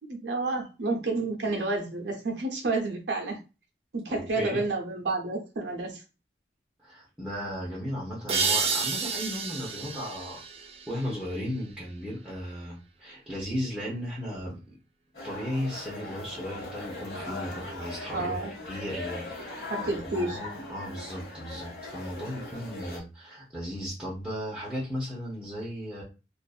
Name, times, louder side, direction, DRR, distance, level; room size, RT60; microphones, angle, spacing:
voice 1, 0.1-3.4 3.9-6.0 18.1-18.5 19.7-20.4, right 3 dB, 85° right, 0.7 m, -30 dB
voice 2, 6.8-10.4 10.9-14.8 15.2-18.4 18.7-19.7 20.0-26.0, equal, 5° right, 0.7 m, -35 dB
sound 1, 8.3-11.7, right 5 dB, 35° right, 0.3 m, -30 dB
sound 2, 15.1-23.0, left 2 dB, 60° left, 1.1 m, -40 dB
2.5 x 2.5 x 2.3 m
head